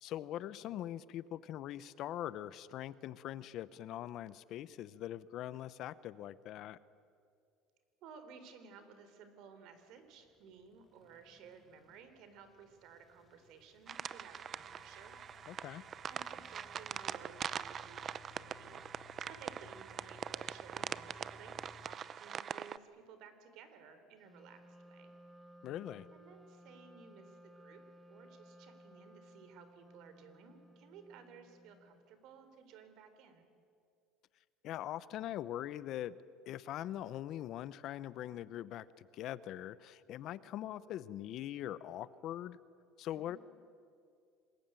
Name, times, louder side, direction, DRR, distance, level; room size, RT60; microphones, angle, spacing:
voice 1, 0.0-6.8 15.5-15.8 25.6-26.1 34.6-36.2 36.5-42.6 43.0-43.4, left 12 dB, 50° left, 17 dB, 0.8 m, -42 dB
voice 2, 8.0-15.2 16.0-25.1 26.1-27.8 28.1-33.5 43.1-43.4, right 6 dB, 60° right, 9 dB, 3.7 m, -57 dB
sound 1, 10.0-22.0, left 4 dB, 20° left, 1.5 m, -62 dB
sound 2, 13.9-22.8, right 8 dB, 35° right, 0.6 m, -43 dB
Wind instrument woodwind instrument, 24.2-32.1, equal, 5° right, 1.3 m, -59 dB
27.0 x 21.0 x 9.0 m, 2.3 s
cardioid pair, 140°, 0 cm